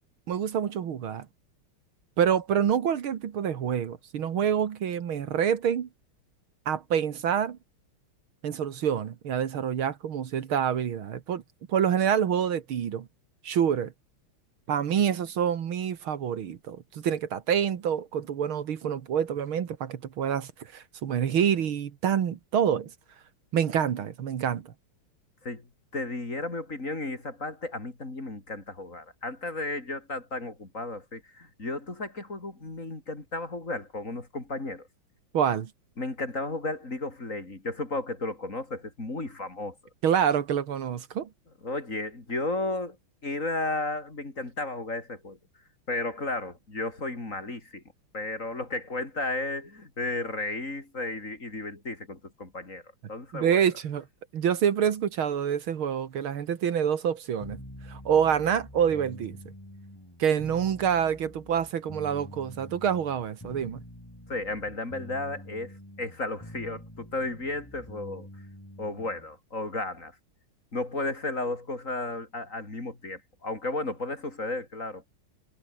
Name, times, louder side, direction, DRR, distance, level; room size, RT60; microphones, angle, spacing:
voice 1, 0.3-1.3 2.2-5.9 6.7-7.6 8.4-11.4 11.7-13.1 13.4-13.9 14.7-22.9 23.5-24.7 35.3-35.7 40.0-41.3 53.3-54.0 54.3-57.6 57.9-59.4 60.2-63.8, right 8 dB, 75° right, 2.3 m, -27 dB
voice 2, 25.9-34.9 36.0-39.8 41.6-43.0 43.2-45.4 45.9-47.8 48.1-52.8 53.1-53.7 64.3-68.3 68.8-70.1 70.7-75.1, left 2 dB, 35° left, 4.6 m, -33 dB
sound 1, 57.4-69.3, equal, 10° left, 6.7 m, -46 dB
omnidirectional pair, 2.4 m